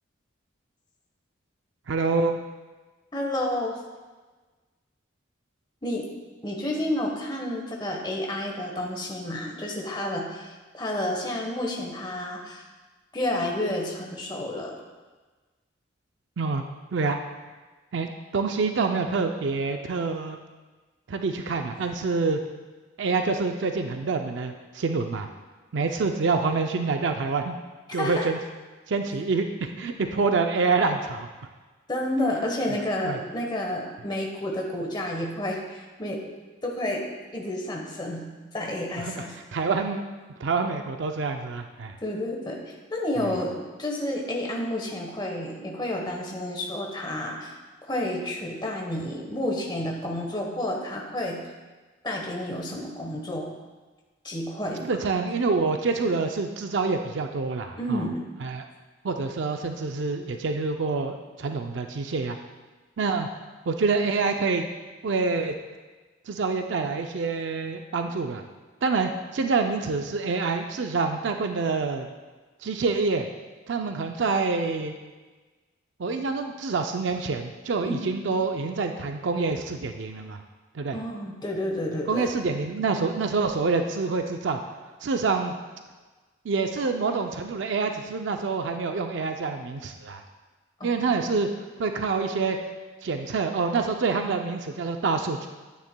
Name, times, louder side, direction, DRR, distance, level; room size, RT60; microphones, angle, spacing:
voice 1, 1.9-2.4 16.4-16.6 16.9-17.2 17.9-20.4 21.1-22.4 23.0-25.3 25.7-27.6 27.9-28.4 28.9-31.3 33.0-33.2 39.0-39.3 39.5-40.1 40.4-42.0 54.8-58.1 58.4-58.7 59.0-62.4 63.0-63.3 63.7-64.7 65.0-65.6 66.3-68.4 68.8-72.1 72.6-73.3 73.7-74.9 76.0-80.4 80.7-81.0 82.1-84.6 85.0-85.5 86.4-90.2 90.8-91.5 91.8-92.6 93.0-95.5, right 4 dB, 65° right, 5 dB, 0.4 m, -26 dB
voice 2, 3.1-3.8 5.8-6.1 6.4-12.6 13.1-14.8 28.0-28.3 31.9-36.2 36.6-37.0 37.3-38.3 38.5-39.3 42.0-47.6 47.9-51.4 52.0-53.5 54.2-54.9 57.8-58.2 77.8-78.0 80.9-82.3 90.8-90.9, left 1 dB, 20° left, 0 dB, 1.1 m, -30 dB
10.0 x 9.1 x 2.2 m, 1.3 s
head